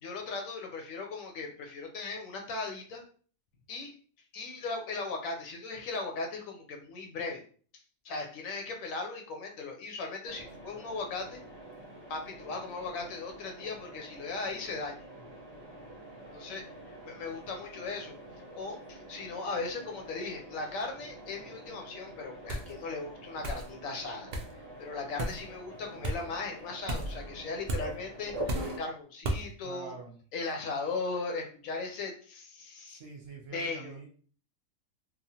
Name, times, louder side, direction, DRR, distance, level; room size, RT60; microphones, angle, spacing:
voice 1, 0.0-3.0 3.7-3.9 4.3-7.4 8.0-11.4 12.1-15.1 16.3-16.6 17.1-18.2 18.5-24.3 24.8-29.9 30.3-33.0 33.5-34.0, left 3 dB, 75° left, 2 dB, 1.0 m, -38 dB
Mechanisms, 10.3-28.8, right 1 dB, 25° right, 0.6 m, -45 dB
sound 1, 22.5-22.7 23.4-23.7 24.3-24.5 25.2-25.4 26.0-26.2 26.9-27.1 27.7-27.9 28.5-28.8 29.2-29.4, right 1 dB, 85° right, 0.4 m, -33 dB
voice 2, 29.6-30.2 32.9-34.1, right 4 dB, 60° right, -1 dB, 0.8 m, -46 dB
3.0 x 2.1 x 2.7 m, 0.43 s
omnidirectional pair, 1.4 m